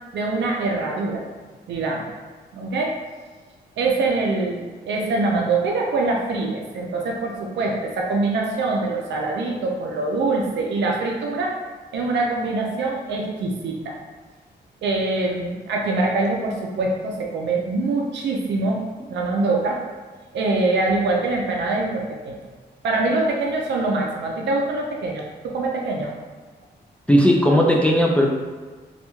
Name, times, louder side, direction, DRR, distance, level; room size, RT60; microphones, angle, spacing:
voice 1, 0.1-1.2 1.7-2.1 2.5-3.0 3.8-11.6 11.9-14.0 14.8-18.8 19.1-19.8 20.3-22.4 22.8-26.1, right 3 dB, 85° right, -1 dB, 0.4 m, -24 dB
voice 2, 27.1-28.3, equal, 5° left, -1 dB, 0.3 m, -16 dB
2.3 x 2.2 x 3.0 m, 1.4 s
cardioid pair, 85°, 18 cm